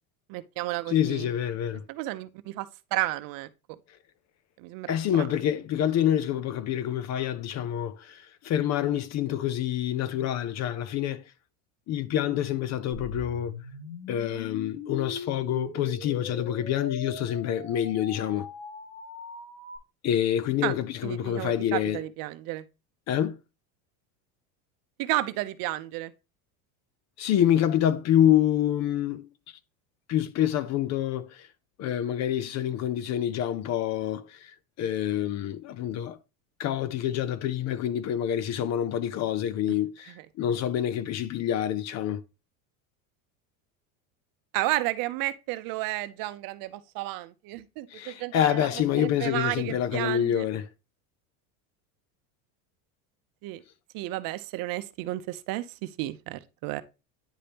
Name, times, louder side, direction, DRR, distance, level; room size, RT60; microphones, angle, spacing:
voice 1, 0.3-1.3 1.9-3.5 4.6-5.3 20.6-20.7 21.0-22.6 25.0-26.1 44.5-48.7 49.0-50.5 53.4-53.6 53.9-56.8, right 17 dB, 50° right, 0.7 m, -32 dB
voice 2, 0.9-1.8 4.9-11.2 11.9-13.5 14.1-18.5 20.0-22.0 23.1-23.4 27.2-29.3 30.1-31.5 31.8-36.2 36.6-42.2 47.9-50.7, left 10 dB, 40° left, 0.6 m, -27 dB
sound 1, 12.9-19.8, left 4 dB, 70° left, 3.0 m, -41 dB
10.0 x 5.1 x 2.9 m
supercardioid pair, 130°, 43 cm